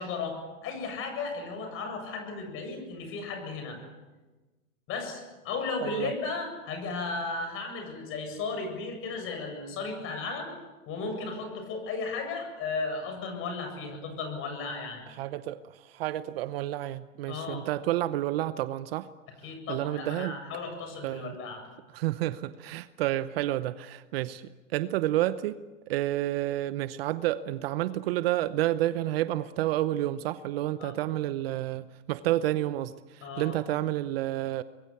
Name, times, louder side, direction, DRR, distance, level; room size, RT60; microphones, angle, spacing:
voice 1, 0.0-3.8 4.9-10.5 10.8-15.1 17.3-17.7 19.4-21.6 30.8-30.9 33.2-33.6, left 4 dB, 30° left, 5 dB, 7.6 m, -35 dB
voice 2, 15.2-19.1 19.7-20.4 21.0-21.4 21.9-25.6 25.9-34.6, right 14 dB, 45° right, 14 dB, 0.9 m, -30 dB
26.0 x 21.5 x 8.4 m, 1.2 s
hypercardioid pair, 135°, 41 cm